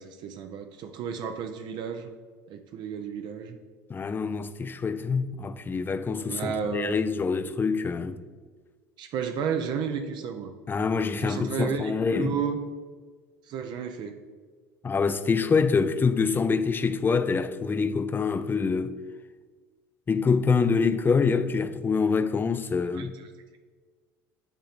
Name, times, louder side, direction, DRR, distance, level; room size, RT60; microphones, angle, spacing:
voice 1, 0.0-2.1 2.5-3.6 6.3-7.0 9.0-10.5 11.2-12.6 13.5-14.2 22.9-23.1, right 7 dB, 55° right, 0.5 m, -32 dB
voice 2, 3.9-8.2 10.7-12.4 14.8-19.0 20.1-23.1, left 5 dB, 20° left, 0.4 m, -25 dB
8.2 x 3.7 x 3.5 m
hypercardioid pair, 75°, 9 cm